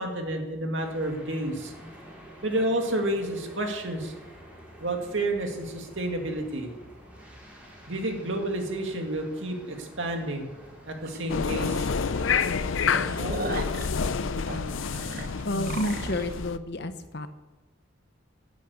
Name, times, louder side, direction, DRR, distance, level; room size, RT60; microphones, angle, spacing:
voice 1, 0.0-1.7 2.4-4.1 4.8-6.7 7.9-10.5 10.9-11.9, right 1 dB, 75° right, 3 dB, 2.3 m, -30 dB
sound 1, 0.8-13.6, equal, 10° right, 4.3 m, -49 dB
sound 2, 11.1-11.2 11.6-11.7 12.1-12.2 12.6-16.3, right 2 dB, 50° right, 1.1 m, -36 dB
sound 3, 11.3-16.6, left 5 dB, 80° left, 0.6 m, -28 dB
voice 2, 15.4-17.3, left 1 dB, 55° left, 10 dB, 0.9 m, -30 dB
11.0 x 9.2 x 8.3 m, 1.2 s
head